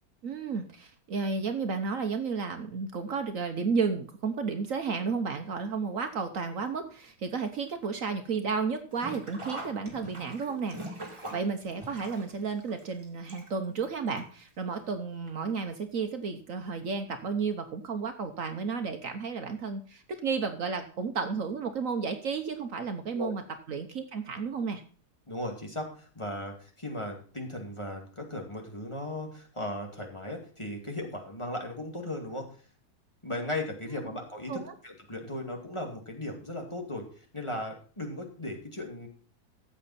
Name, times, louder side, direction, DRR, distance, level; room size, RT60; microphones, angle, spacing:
voice 1, 0.2-23.4 23.7-24.8 34.5-34.7, right 5 dB, 60° right, 7 dB, 1.3 m, -32 dB
Sink (filling or washing), 8.9-13.9 14.2-14.3 15.3-15.4 15.7-15.8, right 1 dB, 20° right, 2.5 m, -42 dB
voice 2, 25.3-32.5 33.2-39.1, left 1 dB, 20° left, 1 dB, 2.2 m, -37 dB
14.0 x 8.2 x 4.2 m, 0.41 s
omnidirectional pair, 1.7 m